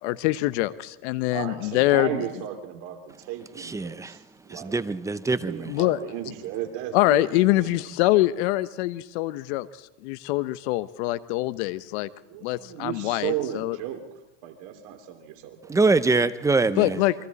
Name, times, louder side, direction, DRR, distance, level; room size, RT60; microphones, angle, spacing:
voice 1, 0.0-2.3 5.7-6.0 6.9-9.7 10.0-12.1 12.4-13.8 16.8-17.1, left 17 dB, 60° left, 15 dB, 1.0 m, -24 dB
voice 2, 1.3-4.9 5.4-7.8 12.3-14.0 14.4-15.7, right 11 dB, 50° right, 5 dB, 3.0 m, -35 dB
voice 3, 3.5-4.2 4.5-5.7 15.7-17.0, right 3 dB, 10° right, 13 dB, 0.7 m, -24 dB
28.5 x 23.0 x 4.2 m, 0.93 s
supercardioid pair, 125°, 38 cm